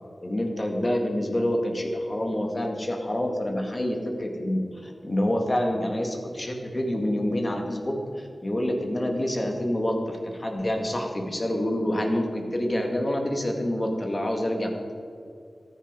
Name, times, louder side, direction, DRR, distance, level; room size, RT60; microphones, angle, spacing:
voice 1, 0.2-14.9, left 1 dB, 35° left, 2 dB, 2.1 m, -27 dB
14.5 x 9.6 x 4.8 m, 2.4 s
wide cardioid pair, 55°, 0 cm